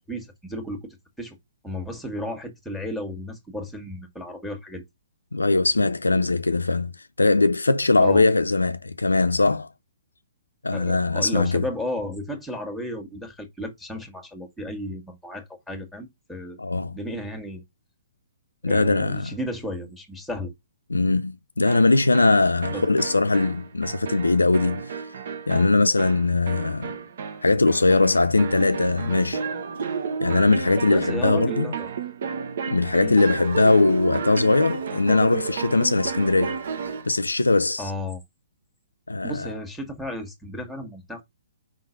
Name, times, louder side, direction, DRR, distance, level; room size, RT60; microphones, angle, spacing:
voice 1, 0.1-0.8 1.2-1.4 1.6-4.8 8.0-8.2 10.7-16.6 16.9-17.6 18.7-20.5 22.7-22.8 30.9-31.9 33.0-33.2 37.8-38.2 39.2-41.2, left 1 dB, ahead, 1.7 m, -33 dB
voice 2, 5.3-6.9 7.2-9.7 10.6-11.6 16.6-17.0 18.6-19.3 20.9-25.0 25.5-26.9 27.4-29.4 30.2-31.7 32.7-36.6 37.0-37.9 39.1-39.5, left 3 dB, 80° left, 0.4 m, -20 dB
sound 1, 21.7-37.1, right 6 dB, 55° right, 1.1 m, -32 dB
5.0 x 3.8 x 5.7 m
figure-of-eight pair, 125°, 0 cm